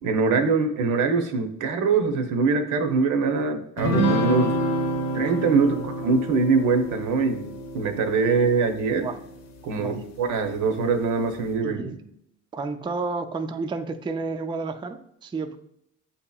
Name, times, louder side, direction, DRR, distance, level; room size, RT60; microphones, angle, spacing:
voice 1, 0.0-4.6 5.1-7.5 7.7-9.1 9.6-11.9, right 4 dB, 85° right, 6 dB, 0.7 m, -23 dB
sound 1, 3.8-9.4, right 1 dB, 65° left, 0.7 m, -28 dB
voice 2, 11.6-12.0 12.5-15.6, right 4 dB, 15° right, 7 dB, 0.3 m, -31 dB
7.7 x 2.8 x 2.3 m, 0.74 s
cardioid pair, 90°, 30 cm